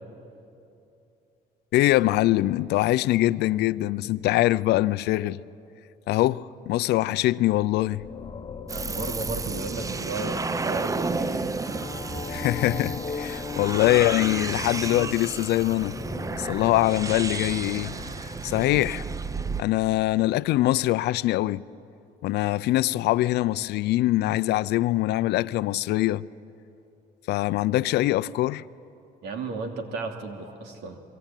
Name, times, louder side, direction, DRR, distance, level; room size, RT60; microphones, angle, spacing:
voice 1, 1.7-5.4 6.1-8.0 12.3-16.0 16.4-17.9 18.4-19.1 19.6-21.6 22.2-26.2 27.3-28.6, left 16 dB, 75° left, 0.6 m, -23 dB
sound 1, 7.5-18.6, left 5 dB, 30° left, 1.2 m, -39 dB
sound 2, 8.7-19.6, right 4 dB, 20° right, 0.6 m, -32 dB
voice 2, 8.7-11.5 29.2-31.0, right 3 dB, 85° right, 2.9 m, -34 dB
sound 3, 17.0-19.6, right 3 dB, 35° right, 1.7 m, -43 dB
27.5 x 23.0 x 9.2 m
cardioid pair, 110°, 17 cm